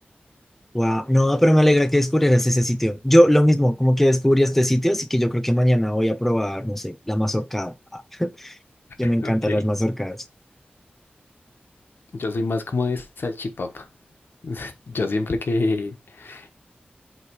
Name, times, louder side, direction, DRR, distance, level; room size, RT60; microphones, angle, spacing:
voice 1, 0.7-8.5 9.0-10.2, equal, 5° left, 0.5 m, -20 dB
voice 2, 9.0-9.6 12.1-13.9 14.4-16.5, left 3 dB, 80° left, 1.2 m, -27 dB
7.9 x 3.2 x 4.7 m
wide cardioid pair, 100°, 4 cm